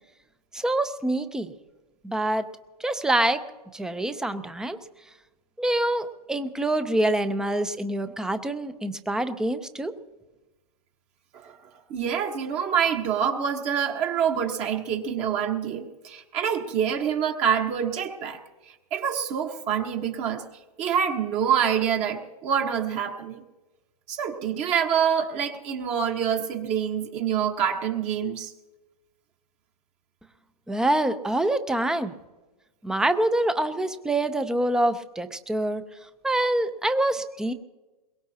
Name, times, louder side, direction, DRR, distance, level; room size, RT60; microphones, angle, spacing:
voice 1, 0.5-1.5 2.0-2.5 2.8-3.4 3.7-4.8 5.6-9.9 30.7-32.1 32.8-35.8 36.2-37.5, right 1 dB, 5° right, 10 dB, 0.7 m, -25 dB
voice 2, 11.9-18.4 18.7-20.4 20.8-23.4 24.1-28.5, right 8 dB, 30° right, 3 dB, 1.4 m, -26 dB
22.5 x 21.5 x 2.9 m, 1.1 s
hypercardioid pair, 135°, 21 cm